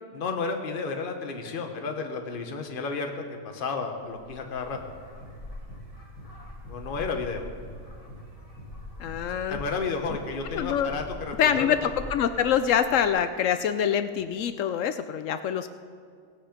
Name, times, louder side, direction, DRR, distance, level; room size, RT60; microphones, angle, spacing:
voice 1, 0.1-4.8 6.7-7.4 9.5-11.9, left 4 dB, 35° left, 4 dB, 1.1 m, -32 dB
sound 1, 4.0-13.1, left 1 dB, 20° left, 2.6 m, -44 dB
sound 2, 4.7-4.9 5.2-5.4 5.7-5.8 6.2-6.3 6.6-6.8 7.1-7.3 7.6-7.8 8.1-8.2 8.6-8.7 9.0-9.2 9.5-9.7 10.0-10.2 10.5-10.6 11.0-11.1 11.4-11.6 11.9-12.1, left 1 dB, 80° right, 5.2 m, -45 dB
voice 2, 9.0-9.6 10.5-10.9 11.4-15.7, left 8 dB, 70° left, 11 dB, 0.7 m, -25 dB
18.0 x 8.8 x 5.1 m, 2.2 s
omnidirectional pair, 1.7 m